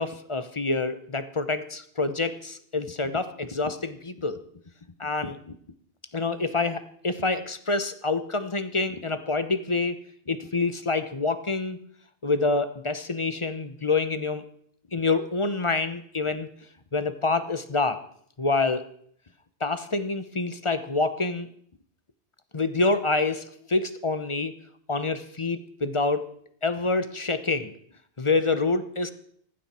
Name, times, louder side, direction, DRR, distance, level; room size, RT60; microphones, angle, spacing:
voice 1, 0.0-4.4 5.0-5.5 6.1-10.0 10.3-11.8 12.2-14.4 14.9-16.5 16.9-18.0 18.4-18.8 19.6-21.5 22.5-24.5 24.9-26.3 26.6-27.7 28.2-29.1, left 3 dB, 30° left, 11 dB, 0.9 m, -27 dB
18.5 x 15.0 x 4.4 m, 0.64 s
omnidirectional pair, 1.1 m